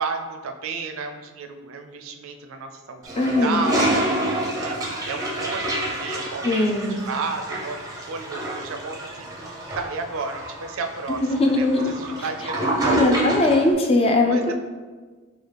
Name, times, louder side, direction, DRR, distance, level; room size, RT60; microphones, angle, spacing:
voice 1, 0.0-6.7 7.1-7.8 8.1-9.5 9.8-11.2 11.6-13.3 14.2-14.5, right 4 dB, 70° right, 5 dB, 0.4 m, -32 dB
Toilet flush, 3.0-13.7, right 1 dB, 15° right, 0.6 m, -28 dB
voice 2, 3.2-3.8 6.4-7.0 11.1-11.9 12.9-14.5, left 2 dB, 30° left, 2 dB, 0.4 m, -20 dB
4.6 x 2.3 x 3.3 m, 1.4 s
head